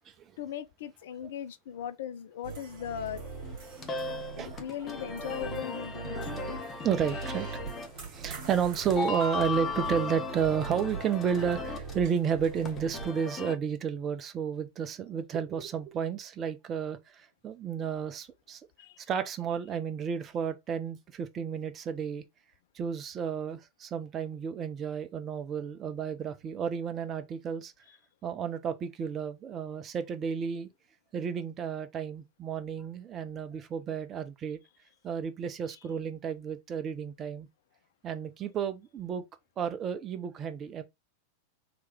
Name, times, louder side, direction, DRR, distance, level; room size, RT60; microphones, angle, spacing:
voice 1, 0.4-3.2 4.0-6.6 18.8-19.0 27.9-28.0 35.7-35.8, left 9 dB, 55° left, 0.4 m, -39 dB
sound 1, 2.4-13.1, right 6 dB, 45° right, 1.3 m, -42 dB
sound 2, 3.1-13.5, left 3 dB, 25° left, 0.7 m, -37 dB
voice 2, 3.9-4.6 6.8-7.6 8.1-18.6 19.1-22.2 22.7-27.7 28.2-30.7 31.1-34.6 35.0-37.5 38.0-39.2 39.6-40.8, right 7 dB, 30° right, 0.6 m, -32 dB
3.1 x 2.9 x 3.5 m
figure-of-eight pair, 90°, 0 cm